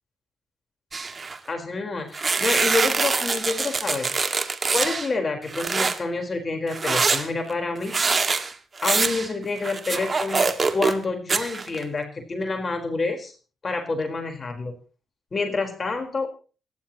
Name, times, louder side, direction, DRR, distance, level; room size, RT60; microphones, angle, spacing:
sound 1, 0.9-1.4 2.1-5.1 5.5-6.0 6.7-11.0 11.3-11.8, right 4 dB, 40° right, 2.0 m, -24 dB
voice 1, 1.5-4.1 4.7-8.0 8.8-13.3 13.6-14.7 15.3-16.3, left 3 dB, 40° left, 4 dB, 4.2 m, -28 dB
27.0 x 11.5 x 3.0 m, 0.37 s
hypercardioid pair, 50°, 0 cm